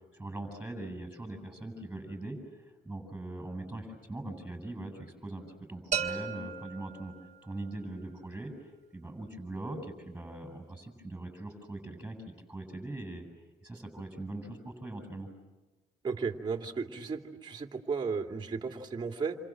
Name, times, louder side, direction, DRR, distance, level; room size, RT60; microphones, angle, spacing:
voice 1, 0.1-7.1 7.4-12.2 12.5-13.3 13.6-15.3, right 2 dB, 10° right, 7 dB, 7.9 m, -41 dB
sound 1, 5.9-7.8, right 6 dB, 45° right, 2.0 m, -36 dB
voice 2, 16.0-19.4, right 5 dB, 25° right, 2 dB, 2.8 m, -34 dB
28.5 x 27.5 x 7.7 m, 1.2 s
cardioid pair, 110°, 17 cm